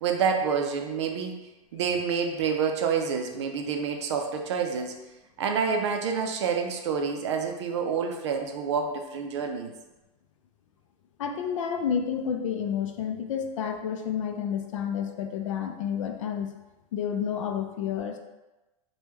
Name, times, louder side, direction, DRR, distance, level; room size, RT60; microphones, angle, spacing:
voice 1, 0.0-1.4 1.7-5.0 5.4-9.7, right 6 dB, 55° right, 3 dB, 0.4 m, -28 dB
voice 2, 11.2-16.5 16.9-18.2, left 8 dB, 65° left, 5 dB, 0.4 m, -30 dB
3.0 x 2.2 x 3.4 m, 1.0 s
supercardioid pair, 180°, 18 cm